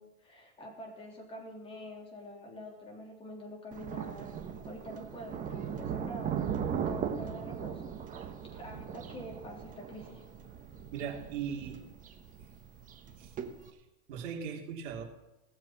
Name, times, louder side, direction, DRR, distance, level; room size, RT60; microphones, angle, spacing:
voice 1, 0.0-4.3 4.6-6.4 6.8-7.9 8.2-10.2, equal, 15° left, -1 dB, 3.4 m, -46 dB
Thunder, 3.7-13.7, right 8 dB, 20° right, 1.2 m, -38 dB
voice 2, 10.9-11.8 13.2-13.4 13.7-15.0, right 7 dB, 55° right, 1 dB, 3.3 m, -39 dB
18.0 x 7.6 x 6.0 m, 0.98 s
supercardioid pair, 145°, 41 cm